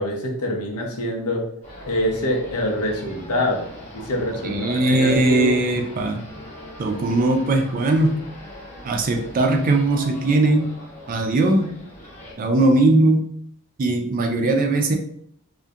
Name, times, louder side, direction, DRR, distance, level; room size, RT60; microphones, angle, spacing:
voice 1, 0.0-1.5 1.9-3.6 3.9-5.6, left 1 dB, 85° left, 1 dB, 0.6 m, -25 dB
sound 1, 1.6-12.3, equal, 30° left, 0.7 m, -41 dB
voice 2, 4.4-6.2 6.8-8.2 8.8-10.7 11.1-11.7 12.4-13.3 13.8-15.0, right 2 dB, 40° right, 3 dB, 0.3 m, -19 dB
2.3 x 2.1 x 2.6 m, 0.66 s
head